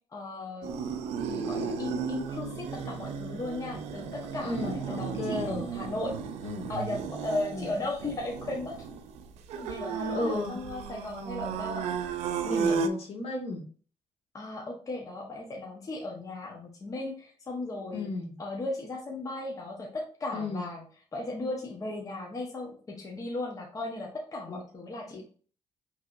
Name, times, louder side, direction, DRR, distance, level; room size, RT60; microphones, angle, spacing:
voice 1, 0.1-0.8 1.2-6.2 6.7-8.8 9.5-11.9 14.3-18.1 18.4-20.8 21.1-25.2, left 2 dB, 30° left, -1 dB, 1.2 m, -36 dB
sound 1, 0.6-12.9, right 6 dB, 90° right, 0.6 m, -34 dB
voice 2, 4.4-5.6 6.4-6.7 7.5-7.7 10.1-10.6 12.4-13.6 17.9-18.4 20.3-20.7 24.5-24.6 25.1-25.2, left 2 dB, 65° left, 0 dB, 1.8 m, -34 dB
5.4 x 3.4 x 2.6 m, 0.42 s
cardioid pair, 110°, 11 cm